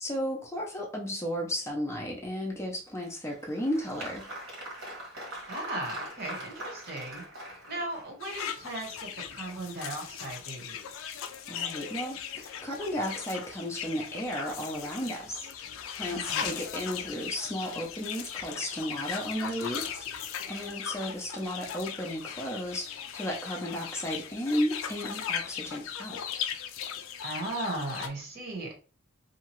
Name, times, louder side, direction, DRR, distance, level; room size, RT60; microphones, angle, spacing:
voice 1, 0.0-4.3 11.5-15.5 16.0-26.4, equal, 15° left, -1 dB, 0.5 m, -34 dB
Applause, 3.0-8.3, right 1 dB, 65° right, 1.3 m, -42 dB
voice 2, 5.5-7.2 7.7-10.8 16.1-16.5 27.2-28.7, right 2 dB, 50° right, 1 dB, 1.0 m, -37 dB
sound 1, 8.2-28.1, left 8 dB, 70° left, 0.4 m, -38 dB
2.7 x 2.3 x 3.0 m, 0.37 s
head